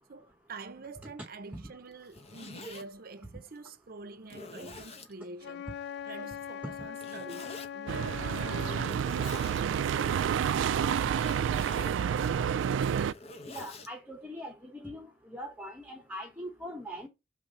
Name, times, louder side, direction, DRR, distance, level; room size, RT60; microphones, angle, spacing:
voice 1, 0.1-5.7 6.0-11.7, right 3 dB, 50° right, 0.7 m, -47 dB
Zipper (clothing), 1.9-2.8 3.6-3.7 4.2-5.1 6.9-7.7 8.7-9.6 11.1-12.0 12.8-13.9, left 3 dB, 35° left, 1.0 m, -46 dB
Wind instrument woodwind instrument, 5.4-9.0, left 8 dB, 60° left, 0.3 m, -41 dB
sound 1, 7.9-13.1, right 8 dB, 85° right, 0.3 m, -29 dB
voice 2, 13.5-17.1, equal, 10° right, 1.1 m, -42 dB
7.1 x 3.7 x 5.5 m
head